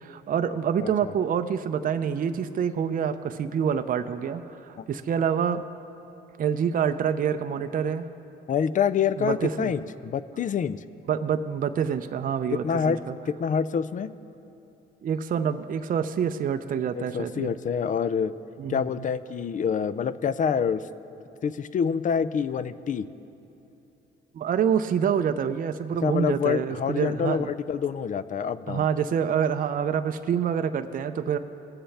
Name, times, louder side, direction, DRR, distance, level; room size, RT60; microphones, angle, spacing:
voice 1, 0.0-5.6 6.4-8.1 9.2-9.7 11.1-13.1 15.0-17.5 18.6-18.9 24.3-27.5 28.7-31.4, right 7 dB, 45° right, 9 dB, 0.5 m, -27 dB
voice 2, 0.8-1.1 8.5-10.8 12.6-13.0 13.3-14.1 16.9-18.3 18.7-20.8 21.4-23.1 26.0-28.9, left 7 dB, 40° left, 15 dB, 0.4 m, -26 dB
20.0 x 7.8 x 3.4 m, 2.8 s
cardioid pair, 90°, 20 cm